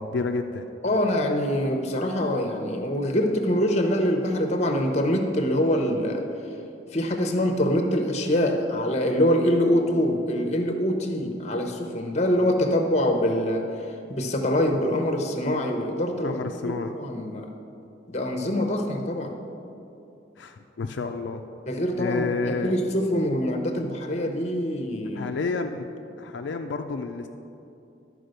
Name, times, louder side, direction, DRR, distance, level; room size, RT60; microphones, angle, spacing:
voice 1, 0.0-0.7 16.2-16.9 20.4-21.4 22.0-22.8 25.1-25.9 26.2-27.3, left 4 dB, 75° left, 5 dB, 0.4 m, -29 dB
voice 2, 0.8-6.2 6.9-13.6 14.1-16.4 16.6-17.5 18.1-19.3 21.7-22.3 22.6-25.3, equal, 35° left, 4 dB, 0.8 m, -24 dB
12.0 x 4.8 x 6.5 m, 2.7 s
head